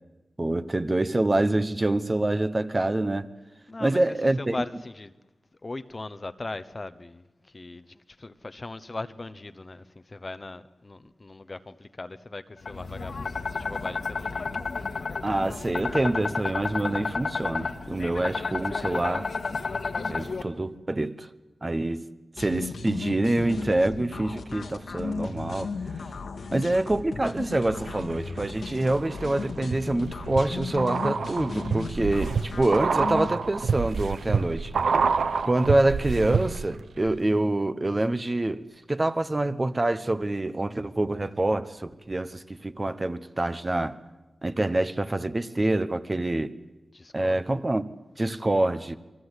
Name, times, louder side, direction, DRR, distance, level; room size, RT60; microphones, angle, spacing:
voice 1, 0.4-3.3 3.8-4.6 15.2-19.3 20.1-21.3 21.6-22.0 22.4-25.7 26.5-34.7 35.4-44.0 44.4-46.5 47.1-47.9 48.2-49.0, right 2 dB, 20° right, 0.9 m, -26 dB
voice 2, 3.7-5.1 5.6-14.5 26.3-26.7 46.9-47.4, left 2 dB, 30° left, 0.9 m, -39 dB
sound 1, 12.6-20.4, left 4 dB, 60° left, 1.7 m, -31 dB
sound 2, 22.4-33.4, left 4 dB, 90° left, 2.2 m, -36 dB
sound 3, 27.7-28.5 28.9-36.8 37.1-37.2, right 5 dB, 80° right, 1.0 m, -28 dB
28.0 x 23.0 x 8.2 m
wide cardioid pair, 155°, 0 cm